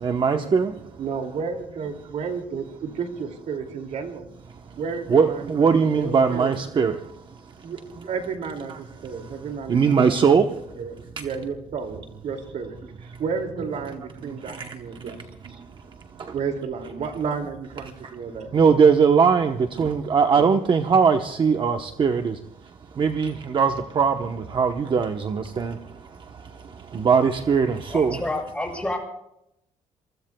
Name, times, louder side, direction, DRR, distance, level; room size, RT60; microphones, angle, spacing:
voice 1, 0.0-0.7 5.1-7.0 9.7-10.5 18.5-22.3 23.0-25.7 26.9-28.2, right 6 dB, 40° right, 6 dB, 1.0 m, -20 dB
voice 2, 1.0-4.2 4.8-6.5 7.6-10.1 10.8-15.5 16.3-18.5, right 5 dB, 65° right, 4 dB, 2.5 m, -32 dB
voice 3, 27.9-29.0, left 2 dB, 10° left, 1 dB, 6.6 m, -29 dB
27.0 x 23.5 x 2.3 m, 0.81 s
cardioid pair, 130°, 13 cm